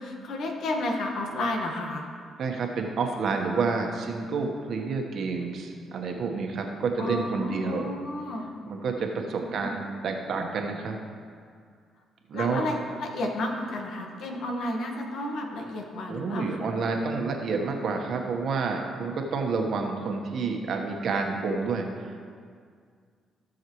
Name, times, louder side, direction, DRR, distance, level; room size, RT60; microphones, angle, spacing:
voice 1, 0.0-2.1 7.0-8.5 9.4-9.8 12.3-16.6, left 1 dB, 70° left, 1 dB, 1.5 m, -32 dB
voice 2, 2.4-7.9 8.7-11.0 12.3-12.6 16.1-22.3, right 4 dB, 65° right, 2 dB, 1.3 m, -29 dB
16.0 x 6.4 x 3.1 m, 2.1 s
cardioid pair, 90°, 0 cm